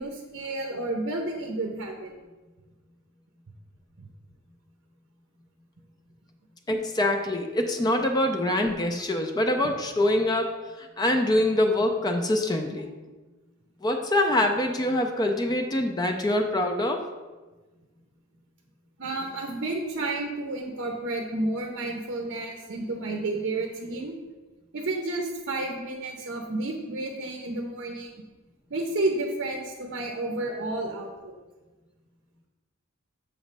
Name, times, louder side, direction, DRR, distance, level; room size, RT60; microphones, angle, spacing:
voice 1, 0.0-2.1 4.0-4.1 19.0-24.1 24.7-28.1 28.7-31.3, right 2 dB, 55° right, 2 dB, 0.6 m, -31 dB
voice 2, 6.7-12.9 13.8-17.0, left 1 dB, 20° left, 4 dB, 0.4 m, -25 dB
7.0 x 3.1 x 5.2 m, 1.2 s
head